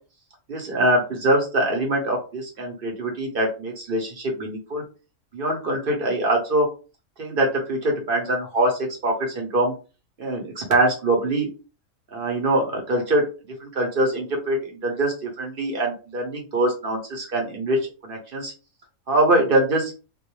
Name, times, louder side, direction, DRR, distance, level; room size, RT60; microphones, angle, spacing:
voice 1, 0.5-4.8 5.3-6.7 7.2-9.7 10.2-11.5 12.1-13.2 13.6-14.6 14.8-17.8 18.0-18.5 19.1-19.9, right 1 dB, 50° right, 0 dB, 0.8 m, -23 dB
2.4 x 2.2 x 3.0 m, 0.33 s
omnidirectional pair, 1.4 m